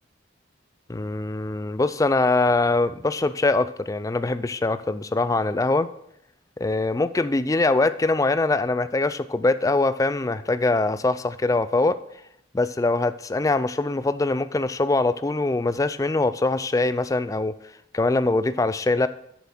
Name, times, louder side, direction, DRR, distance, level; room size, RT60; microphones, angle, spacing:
voice 1, 0.9-5.9 6.6-12.0 12.5-17.5 17.9-19.1, left 2 dB, 20° left, 14 dB, 0.4 m, -23 dB
7.7 x 7.2 x 6.0 m, 0.74 s
head